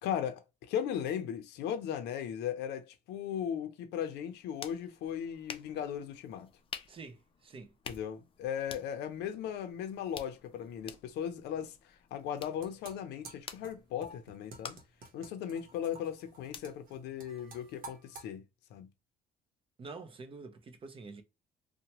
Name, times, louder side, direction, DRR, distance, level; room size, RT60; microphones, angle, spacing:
voice 1, 0.0-6.5 7.9-14.8 15.1-18.4 18.7-18.9, left 9 dB, 80° left, 0.6 m, -37 dB
sound 1, 4.2-17.9, left 6 dB, 30° left, 0.4 m, -51 dB
voice 2, 6.9-7.7 19.8-21.2, right 4 dB, 30° right, 0.6 m, -47 dB
sound 2, 12.2-18.3, right 3 dB, 55° right, 1.0 m, -52 dB
2.8 x 2.2 x 2.9 m
cardioid pair, 110°, 17 cm